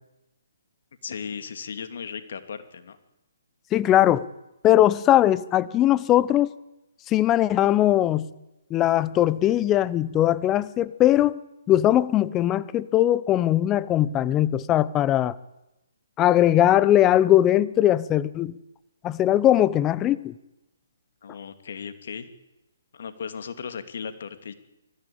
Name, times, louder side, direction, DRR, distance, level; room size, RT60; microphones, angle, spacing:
voice 1, 1.0-3.0 21.2-22.3 22.9-24.5, left 6 dB, 60° left, 9 dB, 2.7 m, -36 dB
voice 2, 3.7-4.3 4.6-6.5 7.1-8.3 8.7-11.4 11.7-15.4 16.2-18.5 19.0-20.3, left 12 dB, 20° left, 19 dB, 0.9 m, -20 dB
24.5 x 15.0 x 8.7 m, 0.94 s
hypercardioid pair, 145°, 0 cm